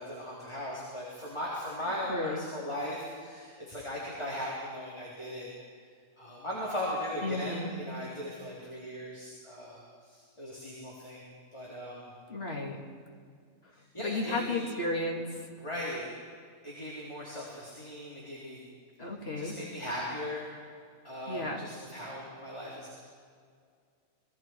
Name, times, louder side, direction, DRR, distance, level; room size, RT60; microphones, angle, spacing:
voice 1, 0.0-5.5 6.2-11.3 11.5-12.1 13.7-14.7 15.6-16.1 16.6-18.7 19.4-20.5 21.0-23.0, left 1 dB, 20° left, -6 dB, 3.6 m, -38 dB
voice 2, 2.1-2.4 7.2-7.7 12.3-12.8 14.0-15.5 19.0-19.6 21.3-21.7, left 2 dB, 45° left, 0 dB, 2.7 m, -33 dB
27.5 x 21.0 x 4.6 m, 2.1 s
omnidirectional pair, 1.5 m